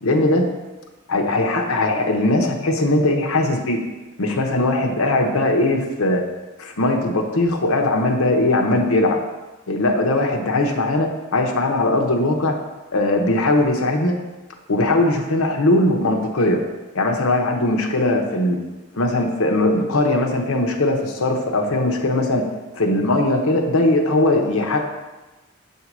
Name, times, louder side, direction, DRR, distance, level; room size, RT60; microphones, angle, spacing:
voice 1, 0.0-0.5 1.1-3.9 4.2-6.2 6.6-9.2 9.7-12.6 12.9-14.1 14.7-16.6 16.9-18.6 19.0-22.5 22.7-24.8, left 2 dB, 85° left, 3 dB, 0.9 m, -19 dB
7.4 x 2.8 x 6.0 m, 1.1 s
head